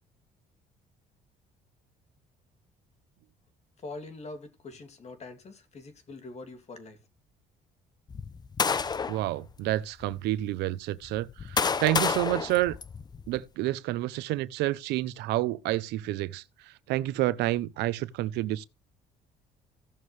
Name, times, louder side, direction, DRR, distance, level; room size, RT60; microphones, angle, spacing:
voice 1, 3.8-7.0, left 3 dB, 40° left, 2.7 m, -44 dB
sound 1, 8.1-9.3 10.0-10.1 11.0-13.4, left 5 dB, 25° left, 0.6 m, -29 dB
voice 2, 9.1-12.8 13.3-16.4 16.9-18.6, right 16 dB, 90° right, 0.8 m, -29 dB
16.5 x 6.5 x 3.2 m
cardioid pair, 110°, 17 cm